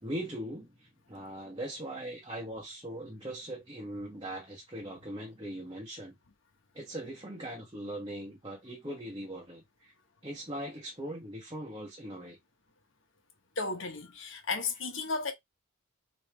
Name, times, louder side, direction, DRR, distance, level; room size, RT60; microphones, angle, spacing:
voice 1, 0.0-6.2 6.7-9.9 10.2-12.4, right 1 dB, 20° right, 1.2 m, -40 dB
voice 2, 13.6-15.3, left 4 dB, 70° left, 1.2 m, -34 dB
4.9 x 3.2 x 3.4 m
head